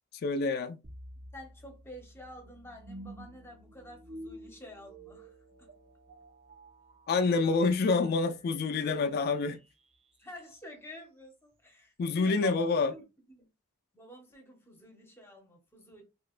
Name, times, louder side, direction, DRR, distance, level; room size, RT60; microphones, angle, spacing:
voice 1, 0.2-0.8 7.1-9.6 12.0-12.9, left 4 dB, 45° left, 0.3 m, -27 dB
sound 1, 0.8-9.9, right 1 dB, 30° right, 0.5 m, -51 dB
voice 2, 1.3-5.7 7.4-7.7 10.2-13.0 13.3-13.5 13.9-16.0, left 1 dB, 10° left, 0.8 m, -49 dB
3.3 x 2.8 x 2.4 m
head